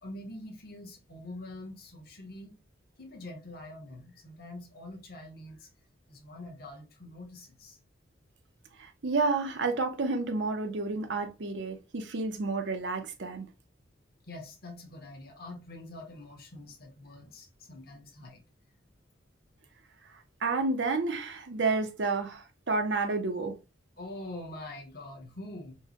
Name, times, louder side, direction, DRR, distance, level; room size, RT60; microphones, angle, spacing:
voice 1, 0.0-2.5 3.0-5.7 6.1-7.8 14.2-18.4 24.0-25.8, left 1 dB, 50° left, 1.0 m, -45 dB
voice 2, 8.8-13.5 20.1-23.6, right 3 dB, 65° right, 0.6 m, -30 dB
4.6 x 2.2 x 2.8 m
head